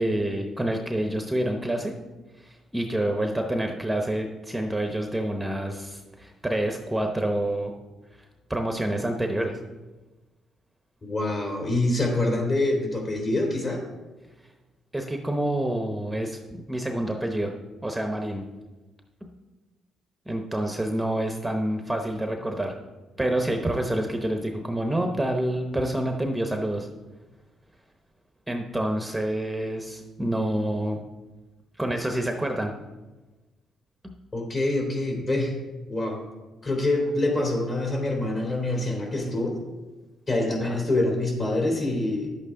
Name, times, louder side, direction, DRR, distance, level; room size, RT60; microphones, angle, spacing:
voice 1, 0.0-1.9 2.4-7.7 8.5-9.6 14.9-17.5 17.8-18.4 19.2-19.3 20.3-22.7 23.2-26.9 28.5-31.0 31.8-32.7 40.6-40.8, right 1 dB, 10° right, 3 dB, 0.8 m, -27 dB
voice 2, 11.0-13.8 34.3-35.5 35.9-36.2 36.6-39.6 40.3-42.3, left 2 dB, 40° left, 0 dB, 3.1 m, -25 dB
10.5 x 8.1 x 3.7 m, 1.2 s
cardioid pair, 90°, 0 cm